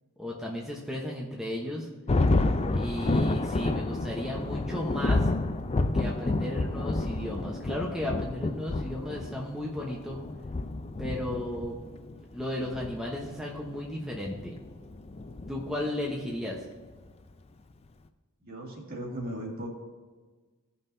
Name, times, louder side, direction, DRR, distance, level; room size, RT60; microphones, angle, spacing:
voice 1, 0.2-1.9 2.7-5.3 5.9-10.2 11.0-11.8 12.3-14.6 15.5-16.6, left 1 dB, ahead, -3 dB, 0.9 m, -34 dB
Thunder, 2.1-16.0, left 2 dB, 30° left, 0.4 m, -30 dB
voice 2, 18.4-19.7, right 1 dB, 45° right, -2 dB, 1.9 m, -37 dB
16.0 x 5.6 x 2.7 m, 1.4 s
head